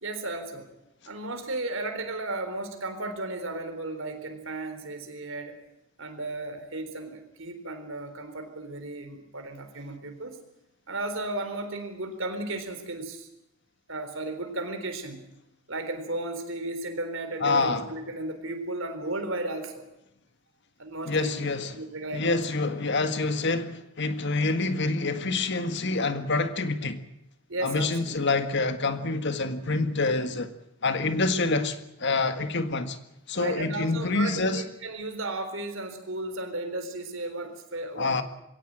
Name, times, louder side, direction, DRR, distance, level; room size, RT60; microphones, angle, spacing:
voice 1, 0.0-0.7 1.1-5.6 6.0-10.4 10.9-13.3 13.9-15.3 15.7-19.8 20.8-21.3 21.7-22.3 27.5-28.1 33.3-38.2, right 2 dB, 60° right, 3.9 m, -34 dB
voice 2, 17.4-17.9 21.1-21.8 22.1-27.0 27.6-30.5 30.8-33.0 33.3-34.6 38.0-38.2, left 3 dB, 55° left, 1.7 m, -27 dB
22.0 x 17.0 x 8.9 m
head